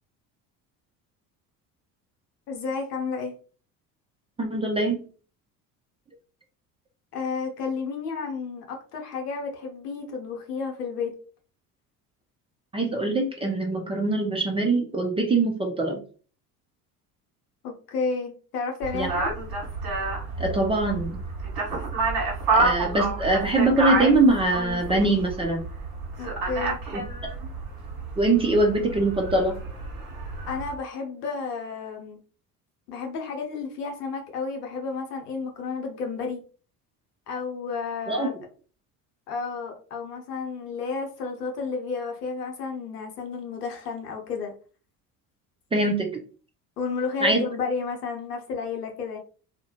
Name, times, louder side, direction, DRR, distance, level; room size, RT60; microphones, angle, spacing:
voice 1, 2.5-3.4 7.1-11.1 17.6-19.3 26.2-26.8 30.5-32.2 32.9-36.4 37.3-38.5 39.3-44.5 46.8-49.2, left 4 dB, 85° left, 2 dB, 0.8 m, -31 dB
voice 2, 4.4-5.0 12.7-16.0 18.9-19.1 20.4-21.2 22.5-25.6 26.9-27.0 28.2-29.6 38.1-38.3 45.7-46.2 47.2-47.4, right 2 dB, 15° right, 2 dB, 0.4 m, -23 dB
sound 1, 18.8-30.7, right 3 dB, 50° right, 1.2 m, -29 dB
2.4 x 2.1 x 2.8 m, 0.39 s
hypercardioid pair, 65°, 46 cm